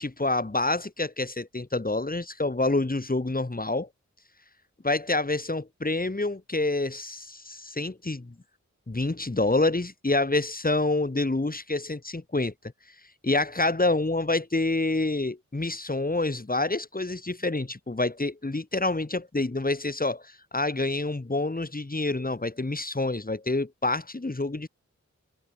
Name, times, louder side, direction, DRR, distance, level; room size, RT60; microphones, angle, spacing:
voice 1, 0.0-3.9 4.8-8.3 8.9-12.5 13.2-24.7, left 2 dB, 30° left, 3.2 m, -27 dB
cardioid pair, 40°, 30 cm